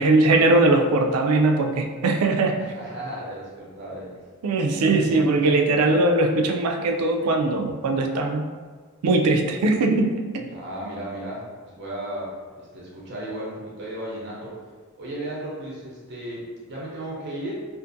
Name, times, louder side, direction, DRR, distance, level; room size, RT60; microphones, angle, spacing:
voice 1, 0.0-2.6 4.4-8.5 9.0-10.5, right 2 dB, 90° right, 3 dB, 0.4 m, -20 dB
voice 2, 2.7-4.2 10.5-14.5 15.0-17.5, right 1 dB, 50° right, -5 dB, 0.6 m, -35 dB
2.5 x 2.5 x 2.6 m, 1.5 s
head